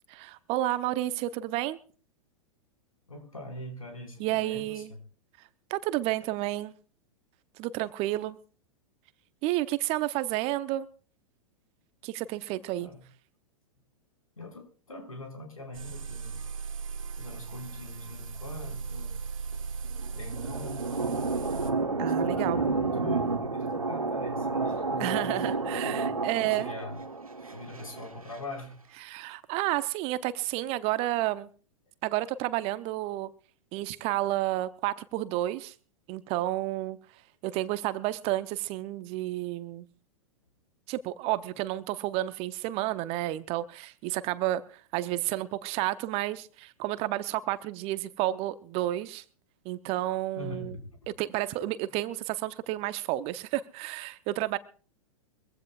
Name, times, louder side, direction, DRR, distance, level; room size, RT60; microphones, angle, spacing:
voice 1, 0.1-1.8 4.2-4.9 5.7-6.7 7.6-8.4 9.4-10.9 12.0-12.9 22.0-22.6 25.0-26.7 29.0-31.5 32.0-33.3 33.7-35.7 36.1-37.0 37.4-39.8 40.9-49.2 49.6-50.8 51.1-54.6, right 15 dB, 35° right, 0.8 m, -31 dB
voice 2, 3.1-5.0 12.8-13.0 14.4-16.4 17.2-19.2 20.1-21.0 22.2-26.1 26.4-27.0 27.5-28.8 50.4-50.9, left 2 dB, 80° left, 5.3 m, -42 dB
sound 1, 15.7-21.7, right 5 dB, 75° right, 2.1 m, -38 dB
sound 2, 19.8-28.4, right 3 dB, 90° right, 1.3 m, -31 dB
23.5 x 16.0 x 2.4 m
figure-of-eight pair, 100°, 17 cm